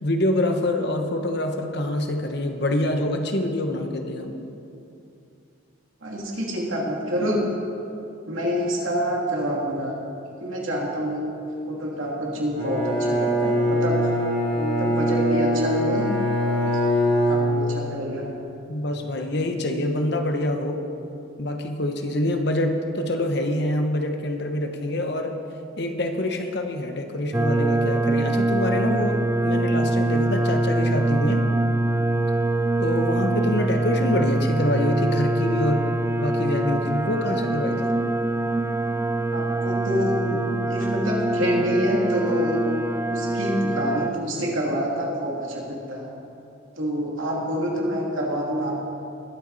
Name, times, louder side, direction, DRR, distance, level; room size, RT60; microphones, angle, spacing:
voice 1, 0.0-4.5 18.7-20.8 21.4-25.4 25.8-31.4 32.8-35.9 36.2-37.9, left 1 dB, 55° left, 5 dB, 1.0 m, -26 dB
voice 2, 6.0-7.4 8.3-9.9 10.4-11.2 11.7-14.0 14.5-16.1 16.4-16.6 17.3-18.3 39.3-40.4 40.7-42.6 43.1-46.1 46.8-48.9, equal, 80° right, -3 dB, 2.6 m, -27 dB
Bowed string instrument, 12.6-18.0, equal, 25° left, 1.7 m, -23 dB
sound 1, 27.3-44.1, right 2 dB, 15° right, 0.3 m, -24 dB
20.5 x 8.0 x 4.1 m, 2.6 s
head